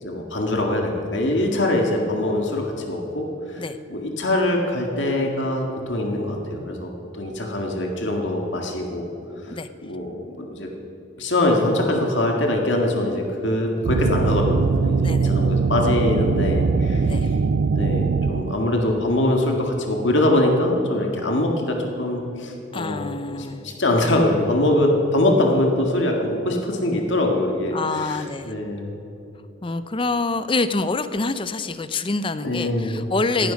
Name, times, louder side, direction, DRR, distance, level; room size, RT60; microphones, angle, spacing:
voice 1, 0.0-9.1 9.4-10.7 11.2-17.4 17.8-28.9 32.4-33.1 33.4-33.5, left 1 dB, 65° left, 1 dB, 1.9 m, -23 dB
sound 1, 13.8-18.9, right 4 dB, 60° right, 0.4 m, -21 dB
voice 2, 15.0-15.3 17.1-17.3 22.7-23.6 27.7-28.5 29.6-33.5, left 3 dB, 25° left, 12 dB, 0.5 m, -26 dB
18.5 x 11.5 x 5.2 m, 3.0 s
head